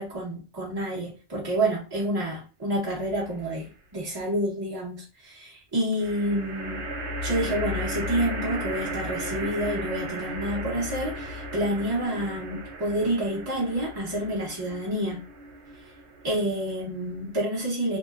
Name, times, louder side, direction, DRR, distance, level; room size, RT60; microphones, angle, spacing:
voice 1, 0.0-6.8 7.2-15.2 16.2-18.0, right 1 dB, 25° right, 0.6 m, -28 dB
sound 1, 2.9-3.5 6.0-17.4, equal, 80° right, 1.0 m, -35 dB
2.9 x 2.1 x 2.3 m
omnidirectional pair, 1.2 m